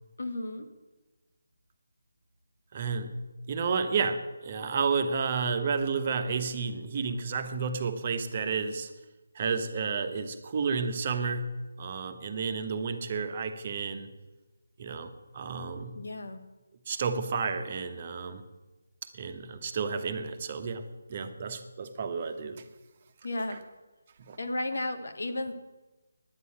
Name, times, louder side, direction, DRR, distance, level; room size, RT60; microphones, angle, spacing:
voice 1, 0.2-0.7 15.9-16.4 23.2-23.6 24.4-25.5, left 2 dB, 70° left, 7 dB, 1.8 m, -33 dB
voice 2, 2.7-3.1 3.5-8.9 9.3-11.5 11.8-14.1 14.8-15.9 16.9-18.4 19.1-20.8 21.1-22.6 24.3-24.4, right 5 dB, 35° right, 8 dB, 1.2 m, -31 dB
9.8 x 9.6 x 8.9 m, 1.1 s
figure-of-eight pair, 155°, 0 cm